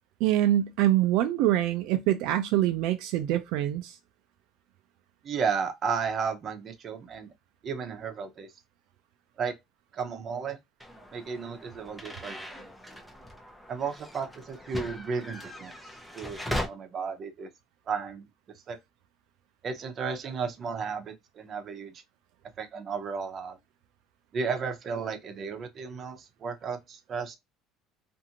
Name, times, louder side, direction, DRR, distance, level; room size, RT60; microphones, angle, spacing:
voice 1, 0.2-3.9, right 13 dB, 75° right, 0.4 m, -25 dB
voice 2, 5.2-7.3 7.6-8.5 9.4-9.5 9.9-10.6 11.1-12.6 13.7-15.7 16.1-17.5 17.9-18.2 18.7-18.8 19.6-21.9 22.6-23.6 24.3-27.4, right 5 dB, 35° right, 0.7 m, -33 dB
sound 1, 10.8-16.7, left 1 dB, 5° left, 0.5 m, -39 dB
2.6 x 2.5 x 2.7 m
cardioid pair, 145°, 0 cm